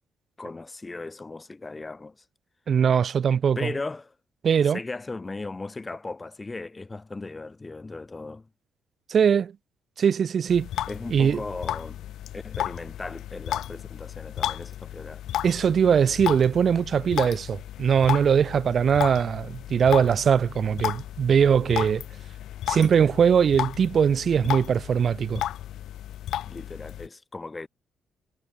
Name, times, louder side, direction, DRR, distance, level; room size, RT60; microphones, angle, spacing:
voice 1, 0.4-2.2 3.5-4.1 4.6-8.5 10.9-12.0 12.3-15.2 26.4-27.7, left 3 dB, 20° left, 1.4 m, -37 dB
voice 2, 2.7-3.7 4.4-4.8 9.1-9.5 10.0-10.7 11.1-11.4 15.4-22.0 22.7-25.4, right 7 dB, 50° right, 0.7 m, -21 dB
sound 1, 10.5-27.1, left 12 dB, 75° left, 0.4 m, -34 dB
cardioid pair, 90°, 0 cm